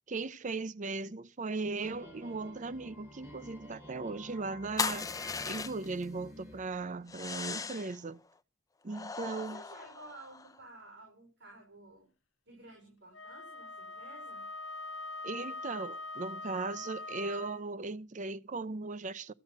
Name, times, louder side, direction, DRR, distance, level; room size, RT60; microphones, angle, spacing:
voice 1, 0.0-5.1 5.5-8.2 8.8-9.6 15.2-19.3, right 3 dB, 40° right, 0.6 m, -38 dB
sound 1, 1.8-7.4, left 1 dB, 15° right, 4.8 m, -51 dB
sound 2, 4.8-6.0 7.1-8.0 8.9-10.6, left 5 dB, 20° left, 0.6 m, -38 dB
voice 2, 9.3-12.1 12.5-14.4, right 2 dB, 65° right, 5.3 m, -53 dB
Wind instrument woodwind instrument, 13.1-17.7, left 2 dB, 70° left, 0.7 m, -43 dB
13.5 x 7.7 x 7.4 m
head